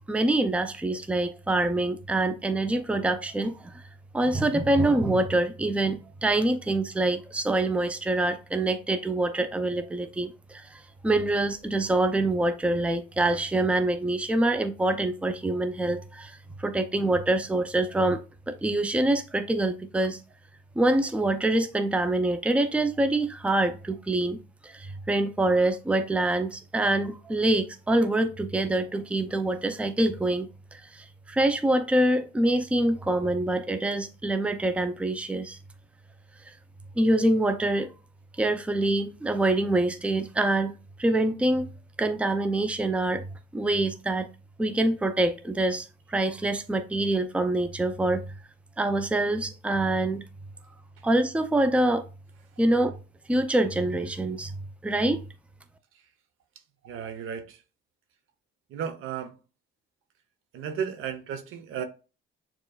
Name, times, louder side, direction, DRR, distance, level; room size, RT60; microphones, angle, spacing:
voice 1, 0.1-3.8 4.1-20.2 20.8-35.6 37.0-37.9 38.4-40.7 41.0-41.7 42.0-43.2 43.5-44.3 44.6-48.2 48.8-50.2 51.0-52.0 52.6-52.9 53.3-54.5 54.8-55.2, right 2 dB, 5° right, 0.5 m, -25 dB
voice 2, 56.8-57.6 58.7-59.3 60.5-61.8, right 7 dB, 85° right, 0.9 m, -34 dB
6.7 x 3.0 x 2.3 m
cardioid pair, 110°, 21 cm